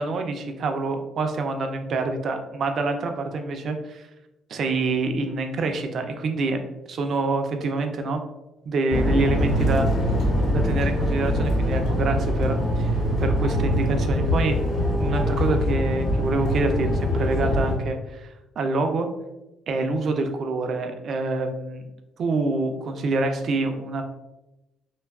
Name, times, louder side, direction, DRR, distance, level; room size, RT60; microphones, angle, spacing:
voice 1, 0.0-4.1 4.5-6.6 6.9-8.2 8.7-9.9 10.5-14.6 15.0-18.3 18.6-19.1 19.7-21.9 22.2-24.0, right 3 dB, 50° right, 6 dB, 0.3 m, -26 dB
sound 1, 8.9-17.7, equal, 60° left, 1.0 m, -23 dB
2.6 x 2.3 x 2.2 m, 0.97 s
cardioid pair, 135°, 0 cm